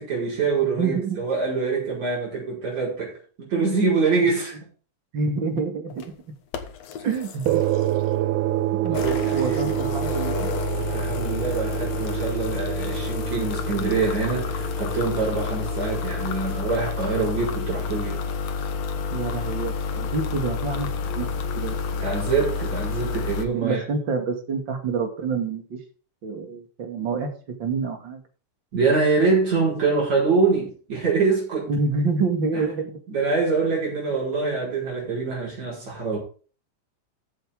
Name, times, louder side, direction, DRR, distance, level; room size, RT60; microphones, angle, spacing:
voice 1, 0.0-4.6 7.0-7.1 8.9-9.7 10.7-18.2 21.9-23.8 28.7-31.7 32.5-32.6 33.1-36.2, right 4 dB, 65° right, 6.7 m, -25 dB
voice 2, 0.6-1.2 5.1-6.1 7.0-7.6 8.7-9.0 9.3-10.5 19.1-20.9 21.2-21.3 21.6-21.8 23.6-25.8 26.2-27.3 27.6-28.2 31.7-33.0, right 4 dB, 40° right, 2.8 m, -27 dB
sound 1, 5.9-6.0 6.5-8.1 8.9-23.5, left 5 dB, 65° left, 2.4 m, -29 dB
sound 2, 7.5-16.2, right 14 dB, 90° right, 2.2 m, -28 dB
14.5 x 8.1 x 3.8 m
omnidirectional pair, 3.4 m